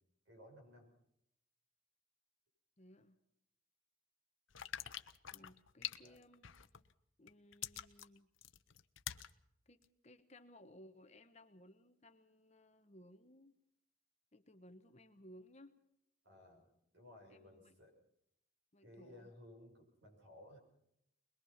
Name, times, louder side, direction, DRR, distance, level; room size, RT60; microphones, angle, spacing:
voice 1, 0.2-0.9 6.0-6.2 16.2-16.7 16.9-17.9 18.8-20.6, left 1 dB, 60° right, 2 dB, 6.8 m, -58 dB
voice 2, 2.8-3.2 5.3-6.5 7.2-8.3 9.7-13.6 14.3-15.8 17.3-17.7 18.7-19.3, left 1 dB, 35° left, 8 dB, 1.1 m, -61 dB
sound 1, 4.5-6.9 7.3-9.3 9.8-9.9, left 11 dB, 70° left, 0.9 m, -46 dB
22.0 x 22.0 x 5.8 m, 0.76 s
head